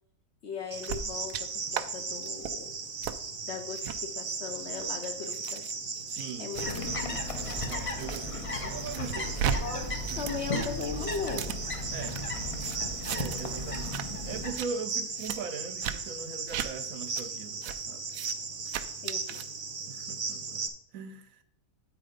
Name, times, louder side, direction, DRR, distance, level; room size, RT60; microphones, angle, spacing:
voice 1, 0.4-2.8 3.4-5.6 6.4-7.2 9.5-11.6 19.0-19.4, left 5 dB, 55° left, 0.8 m, -38 dB
Cricket, 0.7-20.7, right 4 dB, 35° right, 0.6 m, -37 dB
sound 1, 0.8-1.4 1.7-1.8 2.2-2.5 3.0-3.2 3.7-4.0 4.6-8.2 8.6-9.6 9.8-12.2 12.6-13.5 13.7-14.0 14.4-14.7 15.2-15.4 15.8-16.0 16.5-16.7 17.1-17.2 17.6-17.8 18.1-18.3 18.7-19.4, right 9 dB, 90° right, 1.1 m, -36 dB
voice 2, 6.1-6.5 7.6-9.8 10.2-10.3 11.9-12.2 13.1-18.1 19.9-20.7 20.9-21.4, right 5 dB, 65° right, 1.0 m, -40 dB
sound 2, 6.6-14.5, left 2 dB, 35° left, 0.5 m, -36 dB
8.7 x 4.7 x 5.0 m
omnidirectional pair, 1.7 m